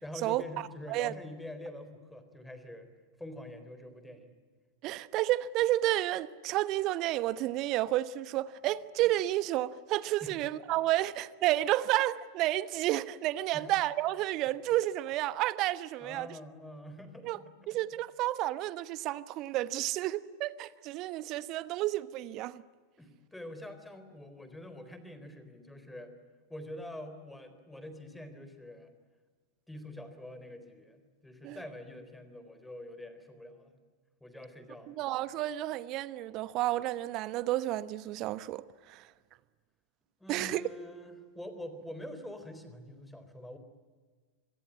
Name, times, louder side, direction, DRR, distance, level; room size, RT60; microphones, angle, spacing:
voice 1, 0.0-2.9 3.2-4.3 10.2-10.4 13.5-13.7 16.0-17.8 23.0-26.1 26.5-28.9 29.7-33.7 34.2-35.0 40.2-43.6, left 1 dB, 5° left, 4.0 m, -45 dB
voice 2, 4.8-16.3 17.2-17.4 17.7-22.6 31.4-31.6 34.9-39.1 40.3-40.6, right 15 dB, 40° right, 1.0 m, -31 dB
26.5 x 23.0 x 9.7 m
figure-of-eight pair, 90°, 0 cm